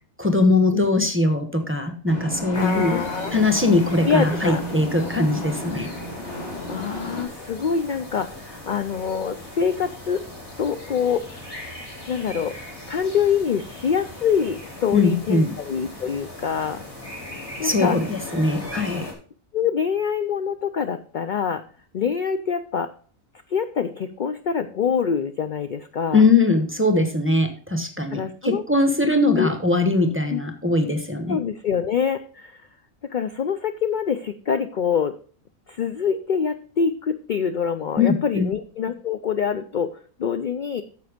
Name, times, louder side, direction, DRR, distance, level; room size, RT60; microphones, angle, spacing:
voice 1, 0.2-3.0 3.3-5.9 14.9-15.6 17.6-19.1 26.1-31.4 38.0-38.5, left 3 dB, 10° right, 5 dB, 0.9 m, -21 dB
sound 1, 2.1-7.2, right 1 dB, 45° left, 2.5 m, -32 dB
sound 2, 2.5-19.1, left 1 dB, 25° left, 3.4 m, -39 dB
voice 2, 2.6-3.4 4.0-4.6 6.7-10.2 10.6-11.3 12.1-12.6 12.9-16.8 17.2-17.3 17.6-18.0 19.5-21.6 21.9-22.9 23.5-26.2 28.1-28.6 29.4-29.5 30.3-30.4 31.3-32.6 33.0-35.1 35.7-40.8, left 7 dB, 65° left, 10 dB, 0.5 m, -25 dB
9.4 x 6.9 x 5.0 m, 0.42 s
omnidirectional pair, 1.5 m